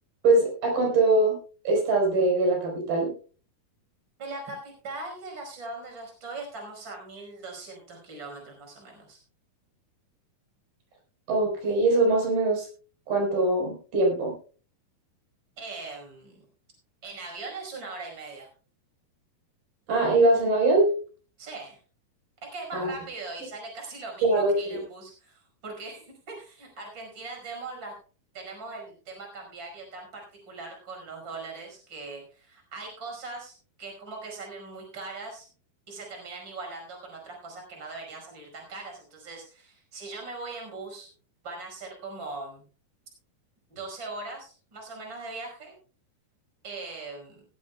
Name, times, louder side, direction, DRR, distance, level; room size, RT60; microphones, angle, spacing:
voice 1, 0.2-1.4 1.6-3.1 11.3-12.7 13.1-14.3 19.9-20.9 22.7-22.9 24.2-24.8, right 2 dB, 70° right, 0 dB, 6.2 m, -22 dB
voice 2, 4.2-9.2 15.6-16.4 17.0-18.5 21.4-21.8 22.4-27.9 28.3-35.5 35.9-41.1 41.4-42.6 43.7-45.8 46.6-47.4, right 3 dB, 30° right, 1 dB, 5.7 m, -40 dB
18.0 x 15.5 x 2.3 m, 0.38 s
omnidirectional pair, 4.4 m